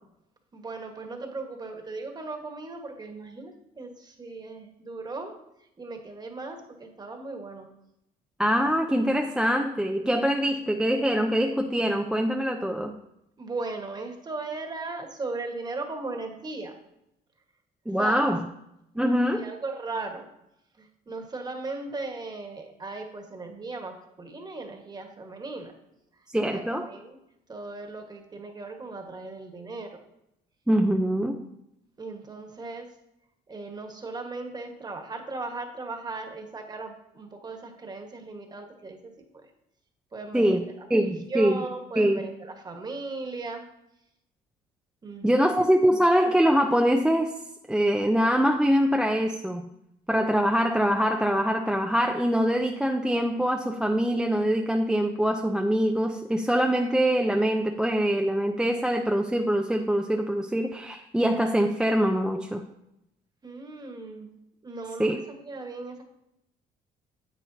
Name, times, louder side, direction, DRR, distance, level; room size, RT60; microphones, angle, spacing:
voice 1, 0.5-5.3 5.8-7.7 13.4-16.7 18.0-18.3 19.4-20.2 20.8-25.7 26.5-27.2 27.5-30.0 32.0-32.9 33.5-39.4 40.1-43.6 45.0-45.5 63.4-64.3 64.6-65.2 65.5-66.0, right 3 dB, 25° right, 4 dB, 1.4 m, -37 dB
voice 2, 8.4-12.9 17.9-18.5 19.0-19.5 26.3-26.9 30.7-31.5 40.3-40.6 40.9-41.6 42.0-42.2 45.2-47.3 47.7-49.6 50.1-62.6 65.0-65.2, equal, 5° right, 3 dB, 0.5 m, -24 dB
9.9 x 7.9 x 2.8 m, 0.83 s
cardioid pair, 110°, 17 cm